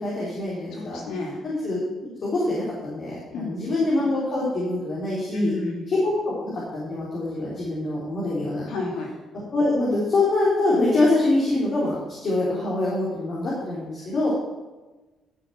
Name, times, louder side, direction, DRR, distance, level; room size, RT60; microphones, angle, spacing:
voice 1, 0.0-1.0 1.4-5.6 5.9-8.7 9.5-14.3, left 2 dB, 50° left, -6 dB, 3.7 m, -25 dB
voice 2, 0.7-1.4 3.3-3.7 5.3-5.8 8.7-9.1, left 3 dB, 85° left, 0 dB, 2.8 m, -31 dB
12.5 x 6.4 x 5.9 m, 1.2 s
cardioid pair, 90°, 0 cm